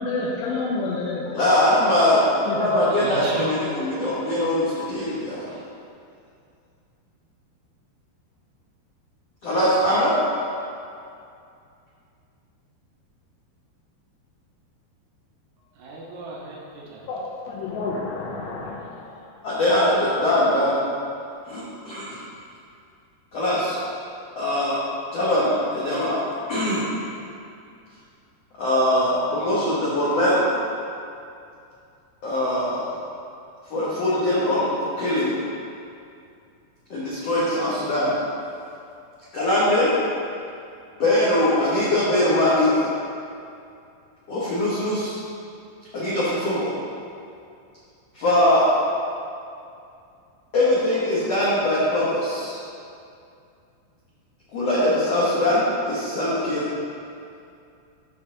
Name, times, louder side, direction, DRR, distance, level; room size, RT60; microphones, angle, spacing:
voice 1, 0.0-1.4 2.5-2.8 5.0-5.3 17.1-19.3, left 3 dB, 90° left, -4 dB, 3.2 m, -30 dB
voice 2, 1.3-2.2 2.5-5.5 9.4-10.1 19.4-20.8 21.5-22.2 23.3-23.8 24.3-24.8 25.1-26.2 26.5-26.8 28.6-30.4 32.2-32.9 33.7-35.4 36.9-38.2 39.3-39.9 41.0-42.9 44.3-45.1 45.9-46.7 48.1-48.6 50.5-52.6 54.5-56.7, left 1 dB, 75° left, -9 dB, 1.4 m, -21 dB
voice 3, 2.9-3.6 15.8-17.0 18.4-18.5, right 1 dB, 75° right, -4 dB, 1.7 m, -33 dB
12.5 x 4.5 x 3.8 m, 2.5 s
omnidirectional pair, 4.9 m